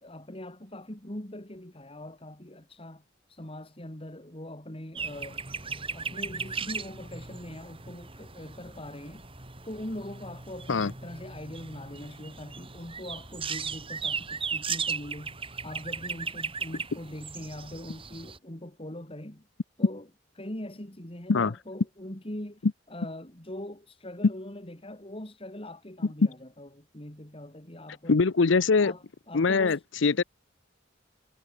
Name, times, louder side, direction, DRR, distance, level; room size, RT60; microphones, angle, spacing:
voice 1, 0.0-3.0 3.3-5.4 5.9-9.3 9.6-15.4 15.6-19.5 19.8-20.1 20.4-28.2 28.8-29.8, left 1 dB, 30° left, 3.1 m, -42 dB
sound 1, 5.0-18.4, right 5 dB, 30° right, 5.1 m, -37 dB
voice 2, 28.1-28.9 29.3-30.2, left 4 dB, 80° left, 0.7 m, -23 dB
head